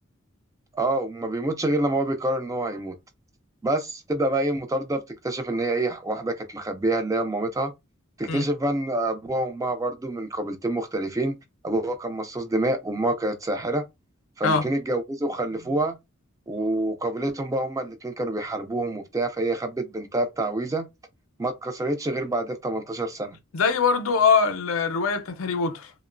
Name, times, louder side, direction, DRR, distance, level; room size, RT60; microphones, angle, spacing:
voice 1, 0.7-2.9 3.6-7.7 8.2-11.4 11.6-13.9 14.4-16.0 16.5-20.9 21.4-23.4, right 1 dB, 15° right, 0.4 m, -27 dB
voice 2, 23.5-25.9, left 5 dB, 85° left, 0.5 m, -22 dB
2.9 x 2.0 x 2.4 m
head